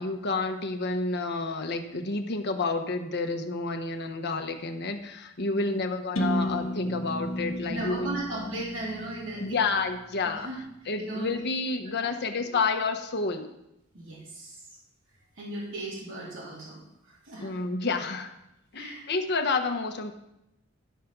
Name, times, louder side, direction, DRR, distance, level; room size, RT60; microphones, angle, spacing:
voice 1, 0.0-8.2 9.4-10.5 10.9-13.5 17.4-18.4 18.7-20.1, left 3 dB, 55° left, 5 dB, 1.0 m, -30 dB
voice 2, 5.5-5.8 7.7-9.6 10.4-10.6 11.0-11.4 11.9-12.1 12.4-12.5 13.9-14.6 15.4-17.6 18.7-19.0, right 2 dB, 70° right, -5 dB, 3.1 m, -37 dB
sound 1, 6.2-10.0, equal, 80° left, 1.1 m, -32 dB
11.5 x 5.0 x 6.0 m, 0.86 s
head